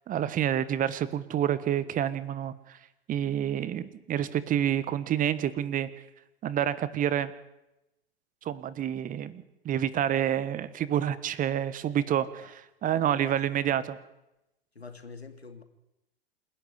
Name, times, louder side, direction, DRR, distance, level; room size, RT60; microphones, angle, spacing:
voice 1, 0.1-2.8 3.1-5.9 6.4-7.3 8.4-14.0, right 10 dB, 25° right, 1.4 m, -28 dB
voice 2, 13.2-13.8 14.7-15.6, left 4 dB, 90° left, 2.7 m, -46 dB
27.5 x 11.5 x 9.9 m
figure-of-eight pair, 95°, 31 cm